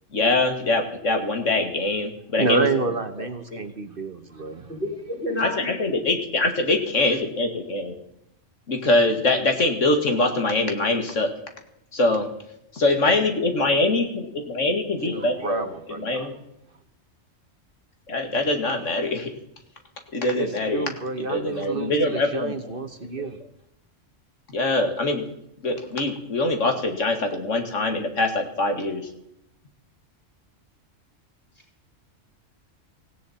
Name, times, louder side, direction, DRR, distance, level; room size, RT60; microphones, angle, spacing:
voice 1, 0.1-2.7 3.2-3.6 5.4-7.9 8.7-11.3 11.9-12.3 12.7-15.7 16.0-16.3 18.1-19.3 20.1-20.9 21.2-22.7 23.2-23.3 24.5-25.2 25.6-29.1, left 2 dB, 75° left, 5 dB, 2.4 m, -23 dB
voice 2, 2.4-4.7 15.0-16.3 20.3-23.4, right 4 dB, 45° right, 8 dB, 1.2 m, -29 dB
voice 3, 4.7-6.2, left 1 dB, 10° left, -2 dB, 7.1 m, -30 dB
17.5 x 16.5 x 4.3 m, 0.79 s
omnidirectional pair, 1.3 m